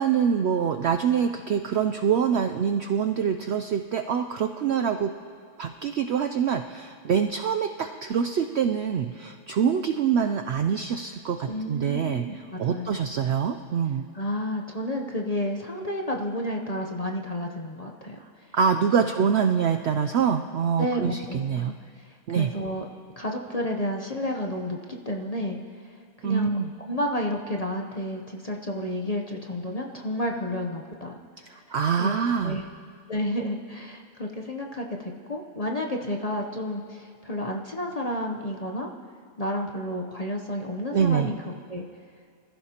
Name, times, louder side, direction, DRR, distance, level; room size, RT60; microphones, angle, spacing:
voice 1, 0.0-5.1 5.6-12.3 12.6-14.1 18.5-21.7 22.3-22.5 26.2-26.7 31.5-32.6 40.9-41.3, right 7 dB, 70° right, 6 dB, 0.6 m, -25 dB
voice 2, 11.4-13.1 14.1-18.6 19.0-19.1 20.8-22.8 23.2-25.6 25.8-25.9 26.2-26.5 26.9-31.2 31.5-31.6 32.0-32.1 32.4-32.6 33.1-38.9 39.4-41.4 41.7-41.8, left 1 dB, 35° left, 1 dB, 0.7 m, -31 dB
26.5 x 15.0 x 2.9 m, 2.2 s
omnidirectional pair, 1.6 m